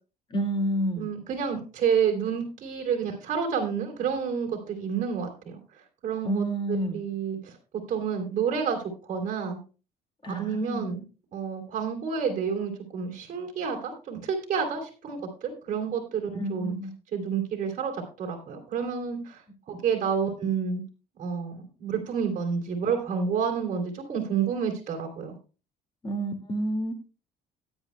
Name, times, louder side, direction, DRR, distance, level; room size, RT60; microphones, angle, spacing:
voice 1, 0.3-1.1 6.2-7.0 10.2-10.9 16.4-16.9 26.0-26.9, right 1 dB, 30° left, 7 dB, 2.1 m, -29 dB
voice 2, 1.0-5.6 6.0-7.5 7.9-9.6 10.3-11.0 11.3-16.8 17.1-19.4 19.7-20.8 21.2-25.3, right 6 dB, 50° right, 2 dB, 3.2 m, -29 dB
17.5 x 9.6 x 2.2 m, 0.33 s
cardioid pair, 110°, 17 cm